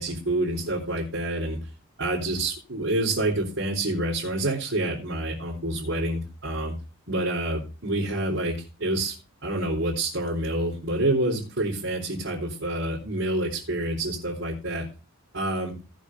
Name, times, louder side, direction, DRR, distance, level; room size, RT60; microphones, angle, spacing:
voice 1, 0.0-1.6 2.0-6.7 7.1-9.2 9.4-14.9 15.3-15.7, right 1 dB, 65° right, -6 dB, 4.2 m, -27 dB
19.0 x 6.4 x 3.7 m, 0.32 s
head